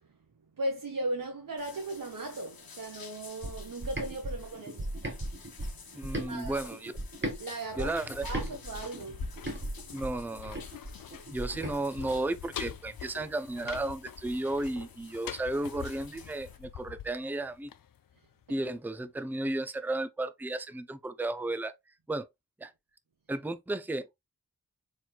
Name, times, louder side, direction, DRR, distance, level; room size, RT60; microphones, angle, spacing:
voice 1, 0.6-4.9 6.3-6.7 7.4-7.9 8.2-9.3 18.5-18.6, right 1 dB, 65° right, 1.1 m, -37 dB
sound 1, 1.6-16.6, left 5 dB, 85° left, 1.1 m, -52 dB
sound 2, 3.4-7.4 7.8-11.8, right 1 dB, 30° right, 1.3 m, -37 dB
voice 2, 5.9-6.9 7.8-8.5 9.9-10.6 11.3-17.7 18.5-21.7 22.1-22.3 22.6-22.7 23.3-24.1, right 2 dB, 5° right, 0.5 m, -34 dB
sound 3, 7.6-18.5 18.8-18.9, left 9 dB, 70° left, 0.5 m, -45 dB
4.4 x 4.3 x 2.4 m
wide cardioid pair, 80°, 35 cm